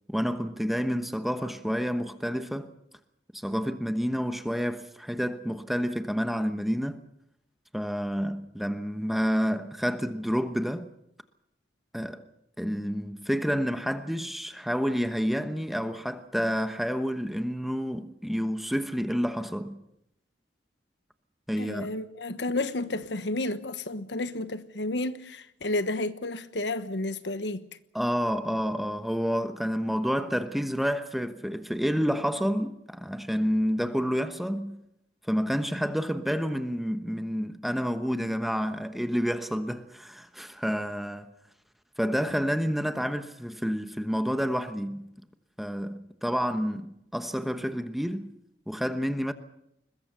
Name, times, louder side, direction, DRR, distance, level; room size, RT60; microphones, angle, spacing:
voice 1, 0.1-2.7 3.3-7.0 7.7-10.9 11.9-12.2 12.6-19.8 21.5-21.9 27.9-34.8 35.3-41.3 42.0-45.1 45.6-48.3 48.7-49.3, equal, ahead, 1.1 m, -29 dB
voice 2, 21.6-27.7, left 2 dB, 90° left, 1.3 m, -31 dB
21.5 x 21.5 x 6.8 m
head